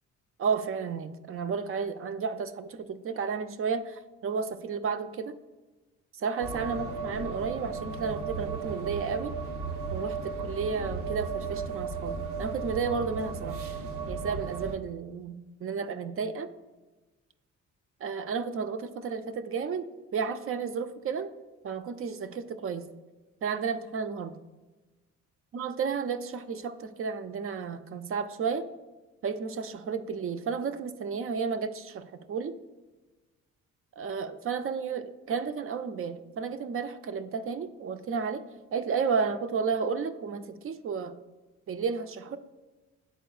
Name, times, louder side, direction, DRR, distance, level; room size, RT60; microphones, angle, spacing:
voice 1, 0.4-5.4 6.2-9.3 9.9-13.6 14.1-16.5 18.0-19.9 20.1-21.3 21.6-22.9 23.4-24.4 25.5-28.6 29.2-32.5 34.0-38.4 38.7-41.1 41.7-42.4, right 5 dB, 45° right, 9 dB, 0.5 m, -32 dB
sound 1, 6.4-14.8, right 5 dB, 90° right, 0.7 m, -35 dB
10.0 x 4.2 x 2.3 m, 1.2 s
cardioid pair, 90°, 30 cm